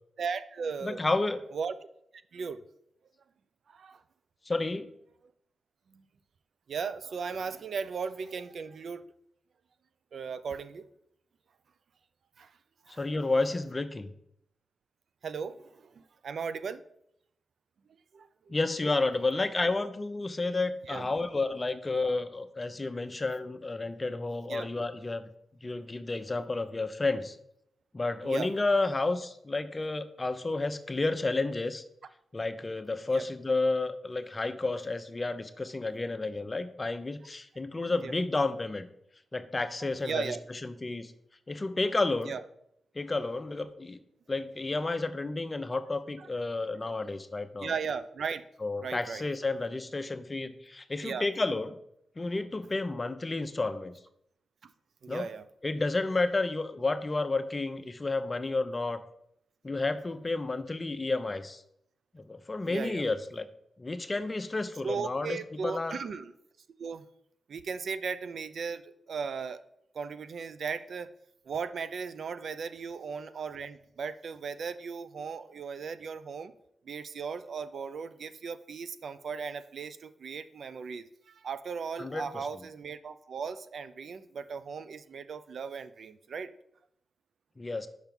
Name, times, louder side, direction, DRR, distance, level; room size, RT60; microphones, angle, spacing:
voice 1, 0.2-1.0 1.5-1.7 2.3-2.6 3.7-4.0 5.9-6.0 6.7-9.0 10.1-10.8 12.4-12.5 12.9-13.0 15.2-16.8 18.1-18.3 20.9-21.1 24.5-24.7 28.2-28.5 33.1-33.2 38.0-38.1 39.8-40.4 42.2-42.4 46.2-46.3 47.6-48.4 48.8-49.2 51.0-51.2 54.6-54.7 55.0-55.4 62.7-63.0 64.8-66.3 66.8-67.1 67.5-69.6 69.9-71.1 71.5-76.5 76.9-86.5, right 5 dB, 70° right, 12 dB, 0.4 m, -37 dB
voice 2, 0.8-1.4 4.5-4.9 12.9-14.1 18.5-25.2 25.6-27.4 27.9-31.8 32.3-38.9 39.3-41.1 41.5-42.3 42.9-44.0 44.3-47.7 48.6-51.7 52.2-53.9 55.1-55.3 55.6-59.0 59.6-61.6 62.1-63.5 63.8-65.4 65.6-66.0 82.0-82.2 87.6-87.9, left 3 dB, 30° left, 10 dB, 0.6 m, -31 dB
5.8 x 4.5 x 5.3 m, 0.73 s
cardioid pair, 55°, 0 cm